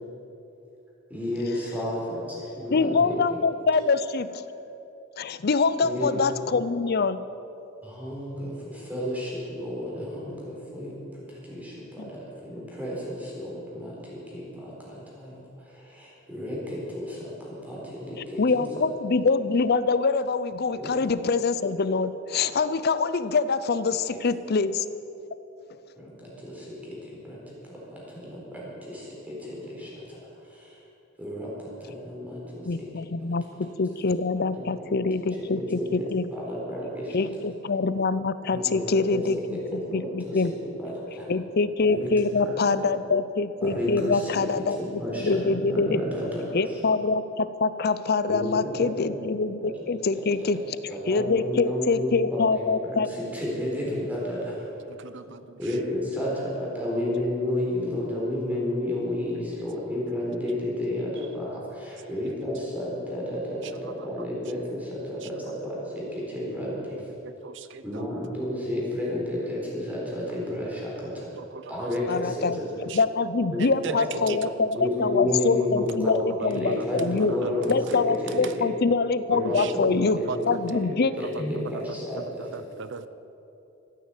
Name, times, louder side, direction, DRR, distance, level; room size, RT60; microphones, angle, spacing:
voice 1, 1.1-3.2 5.8-6.2 7.8-11.0 11.3-18.6 20.7-20.9 26.0-27.4 27.7-30.2 30.5-30.7 31.2-31.5 31.8-32.9 34.4-34.6 35.7-36.0 36.3-37.2 38.5-38.8 39.1-41.3 41.9-42.1 42.4-42.5 43.6-44.4 44.8-46.7 48.3-49.1 50.9-53.0 53.3-54.6 55.3-55.4 55.6-67.0 67.8-71.3 71.7-72.6 73.5-73.6 73.8-74.2 74.8-77.8 78.2-78.6 79.3-79.8 80.2-80.8 81.2-82.5, left 1 dB, 10° right, -5 dB, 3.9 m, -32 dB
voice 2, 2.7-4.4 5.2-7.3 12.0-12.1 18.2-24.8 32.6-36.3 37.1-40.5 41.3-46.0 46.5-53.1 72.1-77.3 77.7-81.1, left 4 dB, 50° left, 14 dB, 0.5 m, -25 dB
voice 3, 55.0-55.4 62.3-62.4 67.2-68.0 71.4-71.9 72.9-73.0 73.8-73.9 74.3-74.4 76.0-76.9 77.3-77.5 79.6-79.7 80.3-80.4 82.1-83.1, right 5 dB, 60° right, 12 dB, 0.6 m, -37 dB
14.0 x 9.5 x 8.3 m, 2.9 s
head